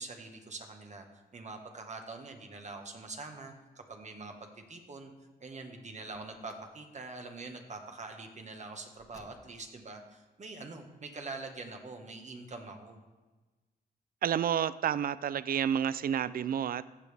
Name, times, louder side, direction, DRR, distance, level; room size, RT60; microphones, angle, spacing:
voice 1, 0.0-5.1 5.4-13.0, right 3 dB, 45° right, 4 dB, 1.4 m, -44 dB
Car, 6.0-6.8 8.9-9.8, left 2 dB, 20° left, 1.1 m, -59 dB
voice 2, 14.2-16.8, right 9 dB, 60° right, 17 dB, 0.4 m, -30 dB
14.5 x 7.0 x 3.5 m, 1.2 s
cardioid pair, 75°, 17 cm